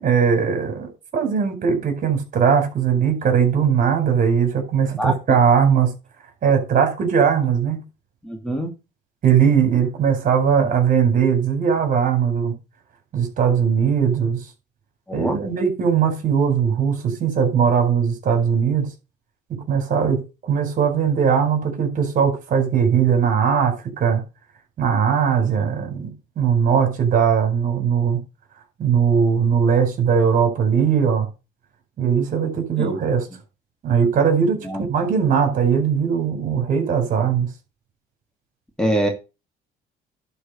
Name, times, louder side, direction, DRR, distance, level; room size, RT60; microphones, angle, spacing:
voice 1, 0.0-5.9 6.4-7.8 9.2-12.5 13.1-14.4 15.1-18.9 19.5-24.2 24.8-28.2 28.8-31.3 32.0-33.3 33.8-37.5, right 7 dB, 50° right, 4.9 m, -19 dB
voice 2, 8.2-8.7 15.1-15.4 25.4-26.0 32.8-33.0 34.6-34.8 38.8-39.1, right 1 dB, 5° left, 2.6 m, -25 dB
11.5 x 4.9 x 6.7 m
cardioid pair, 110°, 17 cm